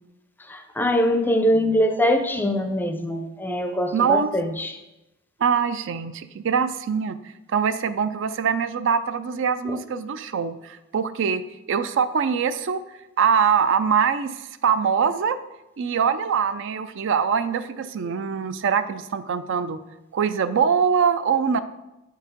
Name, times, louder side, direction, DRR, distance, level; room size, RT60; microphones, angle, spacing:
voice 1, 0.4-4.8 9.6-9.8, equal, 10° left, 7 dB, 0.5 m, -23 dB
voice 2, 3.9-4.3 5.4-7.2 7.5-11.4 11.7-12.8 13.2-15.4 15.8-19.8 20.1-21.6, right 6 dB, 60° right, 12 dB, 0.4 m, -23 dB
8.1 x 4.7 x 5.1 m, 0.97 s
head